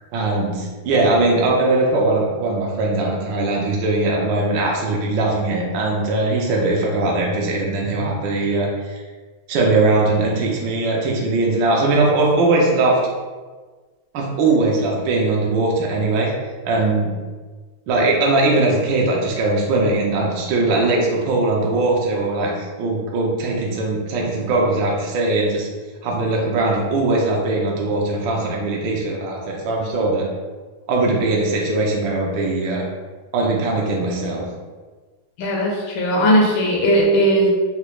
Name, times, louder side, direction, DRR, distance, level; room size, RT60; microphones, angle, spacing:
voice 1, 0.1-9.0 9.5-13.0 14.1-16.3 16.7-17.2 17.9-25.7 26.0-30.3 30.9-32.8 33.3-34.5, right 2 dB, 70° right, -2 dB, 1.2 m, -20 dB
voice 2, 35.4-37.5, equal, 75° left, -2 dB, 1.4 m, -17 dB
4.0 x 2.3 x 3.0 m, 1.4 s
omnidirectional pair, 2.4 m